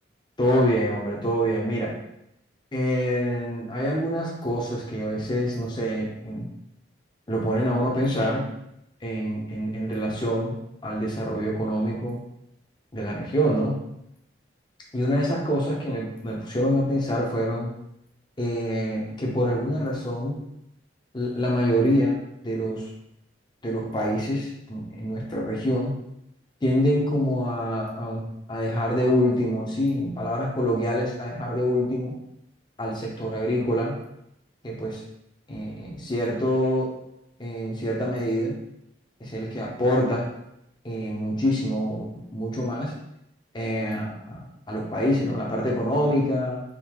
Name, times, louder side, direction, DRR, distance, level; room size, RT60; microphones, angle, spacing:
voice 1, 0.4-1.9 2.7-6.5 7.3-8.4 9.0-10.5 10.8-12.2 12.9-13.8 14.9-17.7 18.4-20.4 21.1-22.2 22.4-22.8 23.6-25.9 26.6-32.1 32.8-34.0 34.6-35.0 35.5-36.9 37.4-38.6 39.2-40.3 40.8-42.9 43.5-46.6, equal, 25° left, -2 dB, 0.7 m, -26 dB
3.6 x 2.7 x 3.0 m, 0.81 s
head